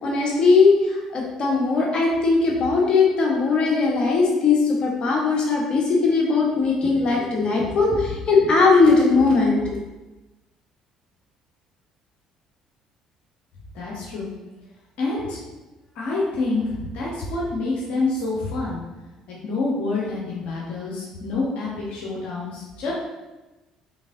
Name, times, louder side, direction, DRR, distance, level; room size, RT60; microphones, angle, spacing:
voice 1, 0.0-9.7, left 4 dB, 45° left, -2 dB, 1.2 m, -19 dB
voice 2, 13.7-14.3 15.0-15.4 15.9-18.8 19.4-22.9, left 3 dB, 60° left, -5 dB, 1.0 m, -27 dB
5.1 x 3.7 x 2.7 m, 1.1 s
hypercardioid pair, 55°, 2 cm